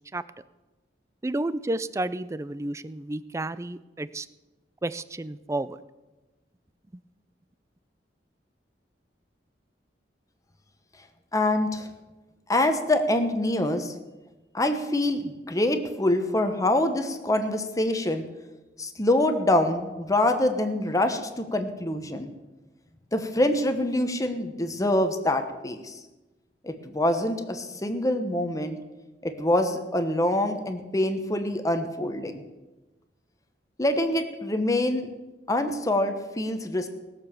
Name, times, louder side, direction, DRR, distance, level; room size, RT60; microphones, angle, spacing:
voice 1, 1.2-4.3 4.8-5.8, right 2 dB, 15° right, 15 dB, 0.4 m, -31 dB
voice 2, 11.3-11.9 12.5-13.9 14.5-18.2 18.8-22.3 23.1-26.0 26.6-28.8 29.2-32.4 33.8-35.1 35.5-36.9, left 1 dB, 20° left, 7 dB, 1.0 m, -25 dB
18.5 x 7.0 x 7.0 m, 1.1 s
head